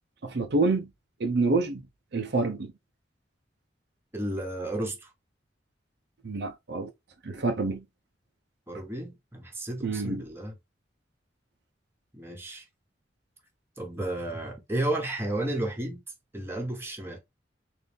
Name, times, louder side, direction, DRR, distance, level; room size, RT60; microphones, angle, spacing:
voice 1, 0.2-0.9 1.2-1.8 2.1-2.7 6.2-6.9 7.2-7.8 9.8-10.2, right 3 dB, 65° right, 0.6 m, -27 dB
voice 2, 4.1-5.1 8.7-10.5 12.1-12.6 13.8-16.0 16.3-17.2, right 1 dB, 15° right, 1.1 m, -32 dB
3.9 x 2.6 x 3.4 m
head